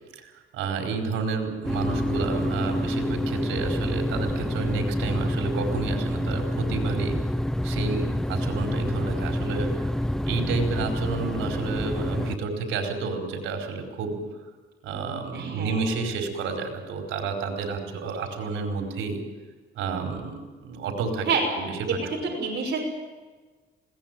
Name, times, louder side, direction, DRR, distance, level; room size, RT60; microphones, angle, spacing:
voice 1, 0.1-7.2 7.6-9.9 10.3-14.2 14.8-19.2 19.7-21.9, right 4 dB, 85° right, 3 dB, 4.7 m, -30 dB
sound 1, 1.6-12.4, equal, 5° left, 0.8 m, -27 dB
voice 2, 15.3-15.8 17.6-17.8 21.3-21.4 22.1-22.8, right 5 dB, 55° right, -1 dB, 6.1 m, -28 dB
21.0 x 18.0 x 9.2 m, 1.3 s
cardioid pair, 90°, 20 cm